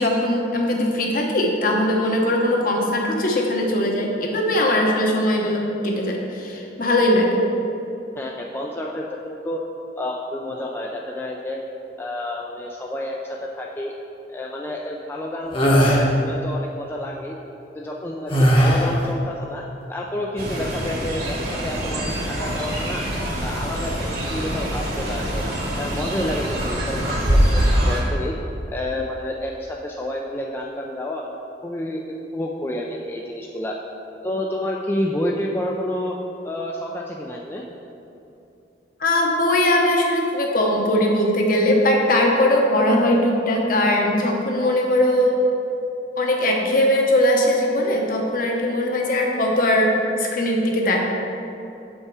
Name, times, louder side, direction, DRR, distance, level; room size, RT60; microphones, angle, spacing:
voice 1, 0.0-7.4 39.0-45.4 46.2-51.0, left 1 dB, 50° left, 0 dB, 1.0 m, -20 dB
voice 2, 8.2-9.6 10.0-11.6 12.0-13.9 14.3-17.4 17.7-23.1 23.4-25.4 25.8-28.3 28.7-33.8 34.2-36.2 36.4-37.6, left 1 dB, 15° left, -1 dB, 0.4 m, -29 dB
sound 1, 15.5-16.0 18.3-19.0, equal, 30° left, 1.0 m, -17 dB
Fowl, 20.4-28.0, equal, 55° right, 1.6 m, -24 dB
7.1 x 5.4 x 4.8 m, 2.8 s
head